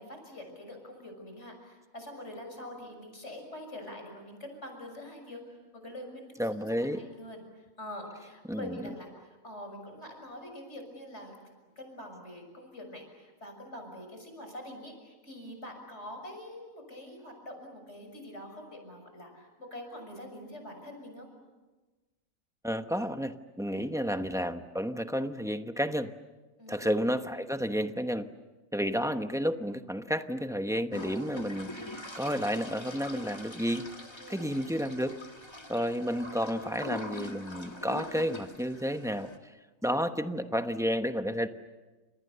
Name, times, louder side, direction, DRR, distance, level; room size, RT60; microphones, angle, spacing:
voice 1, 0.0-5.4 5.7-7.4 7.8-11.3 11.8-21.3 23.7-23.9 26.6-27.0 34.2-34.6, left 1 dB, 55° left, 4 dB, 6.7 m, -45 dB
voice 2, 6.4-7.0 8.5-8.9 22.6-26.1 26.7-28.3 28.7-31.7 32.2-33.9 34.3-35.2 35.7-39.5 39.8-41.5, equal, 5° right, 8 dB, 0.9 m, -31 dB
sound 1, 30.9-39.4, left 1 dB, 20° left, 1.9 m, -43 dB
30.0 x 28.0 x 6.9 m, 1.2 s
omnidirectional pair, 1.4 m